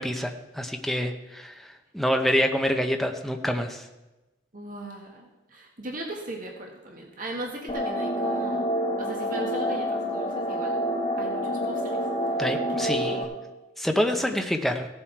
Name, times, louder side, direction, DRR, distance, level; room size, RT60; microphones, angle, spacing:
voice 1, 0.0-3.8 12.4-13.3 13.8-14.9, equal, ahead, 4 dB, 0.8 m, -27 dB
voice 2, 4.5-10.8 11.2-12.1 12.7-13.1 14.0-14.7, right 2 dB, 45° right, -1 dB, 1.8 m, -38 dB
sound 1, 7.7-13.2, equal, 25° left, 1.4 m, -28 dB
16.0 x 7.4 x 4.6 m, 1.1 s
head